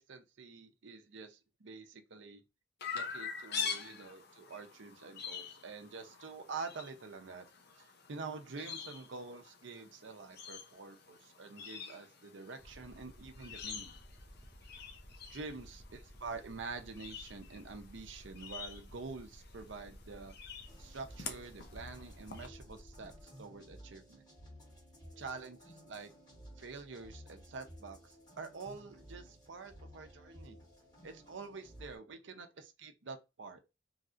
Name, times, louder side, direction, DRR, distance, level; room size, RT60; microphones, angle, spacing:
voice 1, 0.0-2.4 2.9-7.5 7.8-14.0 15.3-20.4 20.8-24.2 25.2-26.1 26.6-30.6 31.0-33.6, right 4 dB, 70° right, 0.6 m, -47 dB
Chirp tweet, 2.8-22.5, left 6 dB, 55° left, 0.6 m, -46 dB
Aircraft, 12.6-23.2, equal, 10° right, 0.6 m, -55 dB
sound 1, 20.7-32.0, equal, 20° left, 1.9 m, -55 dB
3.1 x 2.7 x 2.4 m
head